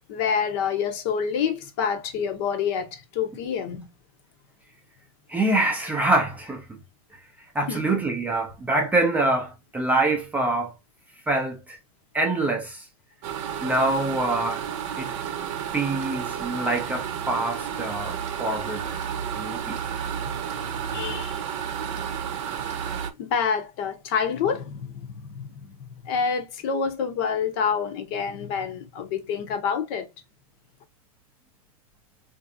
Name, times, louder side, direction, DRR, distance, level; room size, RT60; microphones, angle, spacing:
voice 1, 0.1-3.9 7.7-8.0 20.9-21.4 23.2-25.8 26.0-30.1, left 6 dB, 45° left, 0.8 m, -27 dB
voice 2, 5.3-6.8 7.5-10.7 11.3-11.8 12.1-12.8 13.6-14.6 15.0-15.1 15.7-18.8 19.3-19.8, right 2 dB, 10° right, 0.5 m, -25 dB
sound 1, 13.2-23.1, right 8 dB, 50° right, 0.7 m, -31 dB
3.7 x 2.6 x 2.6 m
hypercardioid pair, 140°, 19 cm